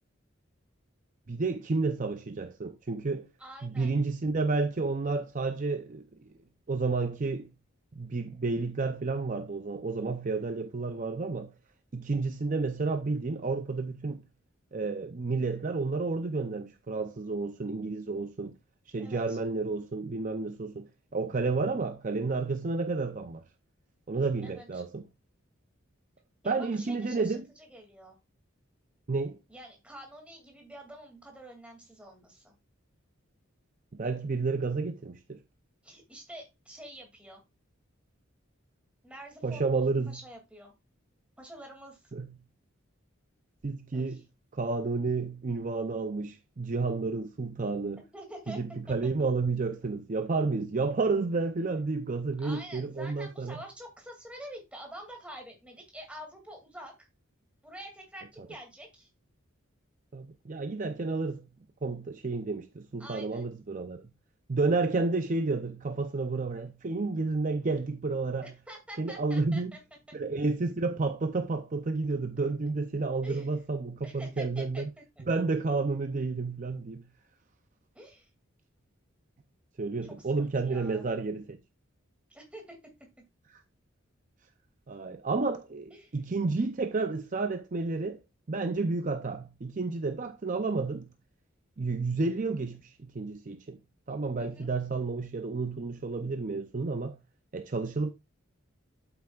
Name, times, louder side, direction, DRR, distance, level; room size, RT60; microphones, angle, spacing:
voice 1, 1.3-3.3 3.6-6.1 6.7-7.5 8.0-11.5 11.9-14.2 14.7-18.6 18.9-23.4 24.1-25.0 26.4-27.4 29.1-29.4 33.9-35.4 39.4-40.2 42.1-42.3 43.6-44.2 44.5-48.0 48.5-53.6 60.1-61.5 61.8-64.0 64.5-68.5 69.0-69.7 70.1-74.9 75.2-77.1 79.8-81.6 83.5-83.6 84.9-88.2 88.5-91.1 91.8-93.8 94.1-97.2 97.5-98.1, right 3 dB, 40° right, 0.5 m, -31 dB
voice 2, 3.4-4.0 19.0-19.4 24.4-24.8 26.4-28.2 29.5-32.5 35.8-37.4 39.0-40.7 41.4-42.0 43.9-44.2 48.1-48.6 48.9-49.0 52.4-57.1 57.6-59.1 63.0-63.5 68.4-69.8 73.2-73.5 74.0-75.2 77.9-78.3 80.2-81.1 82.3-82.8 85.9-86.2 94.4-94.7, right 1 dB, 5° right, 2.4 m, -47 dB
8.4 x 8.1 x 2.4 m
head